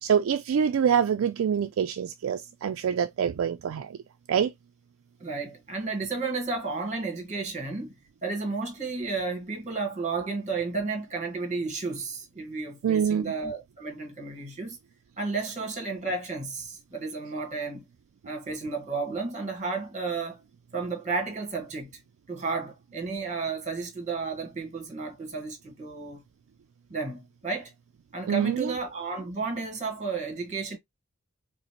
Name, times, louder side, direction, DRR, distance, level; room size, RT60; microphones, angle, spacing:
voice 1, 0.0-4.0 4.3-4.5 12.8-13.3 28.3-28.7, right 7 dB, 70° right, 0.3 m, -25 dB
voice 2, 5.2-7.9 8.2-14.8 15.2-17.9 18.2-20.4 20.7-21.9 22.3-26.2 26.9-27.7 28.1-30.8, right 4 dB, 35° right, 1.3 m, -32 dB
4.9 x 2.0 x 2.9 m
head